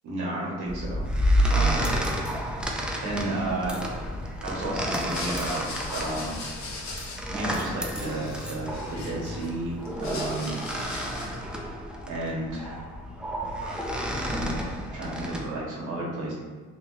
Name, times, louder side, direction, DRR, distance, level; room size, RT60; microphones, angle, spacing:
voice 1, 0.0-1.1 1.5-1.9 2.7-3.8 4.4-6.4 7.3-10.5 11.0-11.7 12.0-12.8 13.6-13.9 14.3-14.6 14.9-16.3, right 2 dB, 75° right, -4 dB, 1.1 m, -33 dB
sound 1, 0.6-15.5, equal, 5° right, 0.4 m, -30 dB
sound 2, 4.9-7.5 7.8-9.5 9.8-11.4, left 3 dB, 65° left, 0.8 m, -39 dB
3.0 x 2.3 x 3.0 m, 1.5 s
cardioid pair, 90°, 30 cm